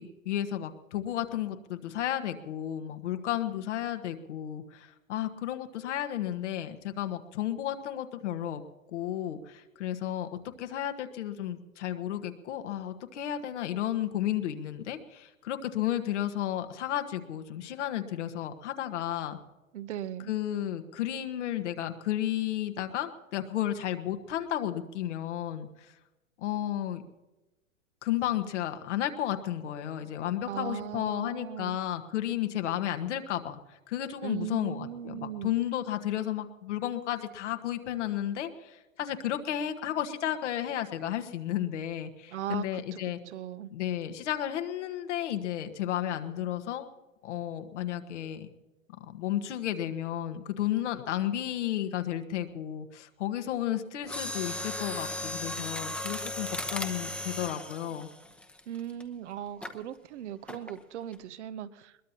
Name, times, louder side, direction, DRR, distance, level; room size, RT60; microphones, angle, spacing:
voice 1, 0.0-8.6 8.9-19.4 20.3-26.0 26.4-27.0 28.0-43.2 43.7-46.9 47.2-48.5 49.0-58.1, left 11 dB, 60° left, 7 dB, 1.5 m, -33 dB
voice 2, 19.7-20.3 30.5-31.8 34.2-35.5 42.3-43.7 58.7-62.0, right 11 dB, 60° right, 13 dB, 1.0 m, -38 dB
Mechanisms, 54.0-59.0 59.6-59.8 60.5-60.8 61.1-61.2, left 1 dB, 5° left, 1.0 m, -36 dB
21.5 x 20.5 x 2.9 m, 1.0 s
hypercardioid pair, 120°, 40 cm